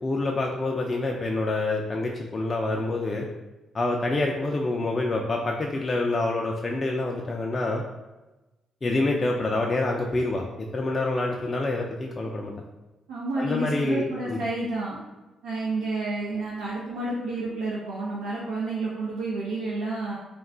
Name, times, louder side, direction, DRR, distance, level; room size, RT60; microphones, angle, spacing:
voice 1, 0.0-3.2 3.7-7.8 8.8-12.5 13.4-14.4, left 2 dB, 35° left, 0 dB, 0.3 m, -27 dB
voice 2, 13.1-15.0 15.4-20.2, right 2 dB, 90° right, -7 dB, 0.5 m, -30 dB
2.3 x 2.3 x 3.6 m, 1.1 s
supercardioid pair, 60°, 0 cm